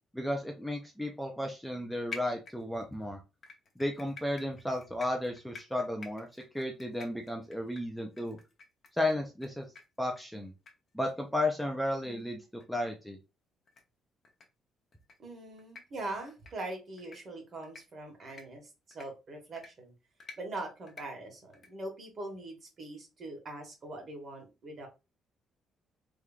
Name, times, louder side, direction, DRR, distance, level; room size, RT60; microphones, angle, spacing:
voice 1, 0.1-3.2 3.8-6.3 6.5-8.4 9.0-9.7 10.0-10.5 10.9-12.4 12.7-13.2, left 1 dB, ahead, 2 dB, 0.5 m, -33 dB
sound 1, 2.1-2.9 3.4-9.5 9.7-9.8 10.1-10.3 10.7-10.8 11.0-11.1 11.6-11.7 12.0-12.1 12.6-12.7 13.7-13.8 14.2-14.4 14.9-15.1 15.6-15.8 16.3-16.5 17.0-17.2 17.6-17.8 18.3-18.4 18.9-19.0 19.6-19.7 20.2-20.4 20.9-21.0 21.5-21.7, left 5 dB, 40° left, 0.7 m, -47 dB
voice 2, 15.2-19.9 20.4-24.9, right 2 dB, 45° right, 2 dB, 1.4 m, -42 dB
3.5 x 3.1 x 2.4 m, 0.27 s
cardioid pair, 140°, 0 cm